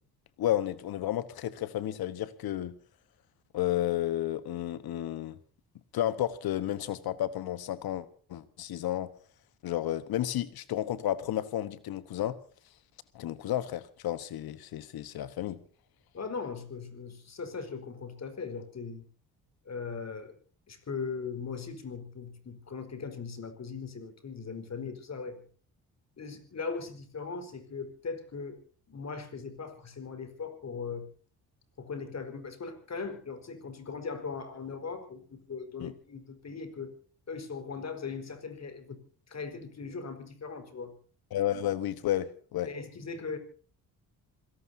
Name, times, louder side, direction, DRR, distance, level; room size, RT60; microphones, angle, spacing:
voice 1, 0.4-2.8 3.5-5.4 5.9-9.1 9.6-12.4 13.1-15.6 35.8-35.9 41.3-42.7, left 12 dB, 70° left, 15 dB, 1.3 m, -32 dB
voice 2, 16.1-19.1 19.6-20.3 20.7-25.5 26.2-28.6 28.9-31.1 31.8-36.9 37.3-39.0 39.3-40.9 42.6-43.4, left 5 dB, 45° left, 9 dB, 4.6 m, -39 dB
26.5 x 17.5 x 2.8 m, 0.42 s
supercardioid pair, 70°, 38 cm